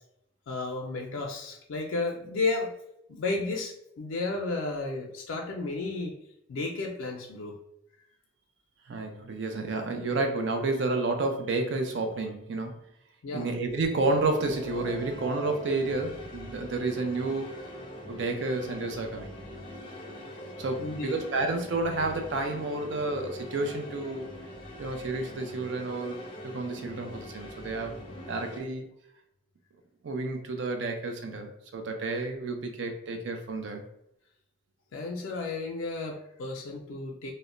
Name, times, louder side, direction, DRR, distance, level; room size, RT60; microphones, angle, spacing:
voice 1, 0.5-2.7 3.1-6.1 6.5-7.6 13.2-13.5 20.8-21.2 34.9-37.3, left 3 dB, 90° left, 0 dB, 0.4 m, -33 dB
voice 2, 8.9-12.8 13.3-17.5 18.1-19.3 20.6-24.3 24.8-28.0 28.3-28.9 30.0-33.9, right 3 dB, 65° right, 5 dB, 0.4 m, -30 dB
sound 1, 13.9-28.6, equal, 25° left, 0.4 m, -43 dB
2.1 x 2.0 x 3.6 m, 0.78 s
head